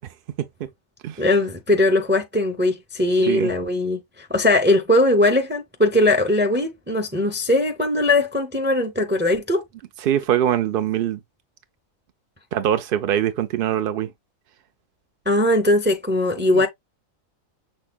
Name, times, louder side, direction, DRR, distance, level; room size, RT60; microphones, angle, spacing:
voice 1, 1.2-9.6 15.3-16.7, left 1 dB, 15° right, 0.5 m, -20 dB
voice 2, 10.0-11.2 12.5-14.1 16.5-16.6, right 11 dB, 65° right, 0.5 m, -22 dB
6.4 x 3.5 x 2.2 m
omnidirectional pair, 1.4 m